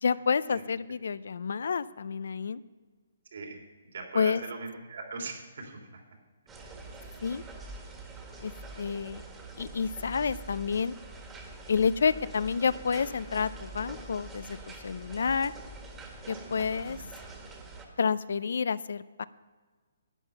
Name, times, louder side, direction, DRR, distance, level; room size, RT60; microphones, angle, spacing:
voice 1, 0.0-2.6 4.1-4.4 7.2-7.4 8.4-8.5 8.8-9.2 9.6-10.9 11.7-15.5 16.3-17.0 18.0-19.2, left 6 dB, 70° left, 17 dB, 0.4 m, -29 dB
voice 2, 3.9-6.0 6.6-6.8 16.4-16.5 16.8-17.1, right 3 dB, 70° right, 1 dB, 3.2 m, -40 dB
sound 1, 6.5-17.9, right 3 dB, 15° right, 1.6 m, -45 dB
11.5 x 9.0 x 5.5 m, 1.4 s
hypercardioid pair, 150°, 0 cm